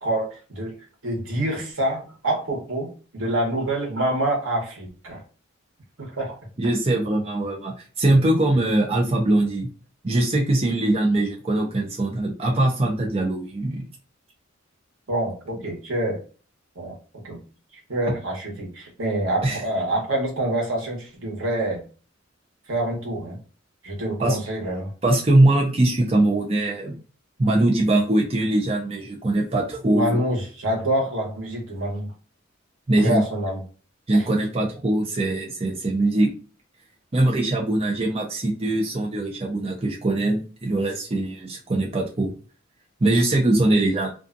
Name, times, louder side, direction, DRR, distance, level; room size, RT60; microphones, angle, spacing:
voice 1, 0.0-0.8 1.0-5.2 6.0-6.4 15.1-16.2 16.7-16.9 17.2-17.4 17.9-21.8 22.7-23.4 23.8-24.9 29.9-32.1 33.0-33.6 34.1-34.2, right 1 dB, 80° right, -1 dB, 1.1 m, -26 dB
voice 2, 6.6-9.7 10.0-13.8 19.4-19.6 24.2-24.4 25.0-27.0 27.4-30.2 32.9-33.2 34.1-36.3 37.1-42.3 43.0-44.1, right 1 dB, 30° right, -1 dB, 0.6 m, -21 dB
2.6 x 2.4 x 2.5 m, 0.37 s
head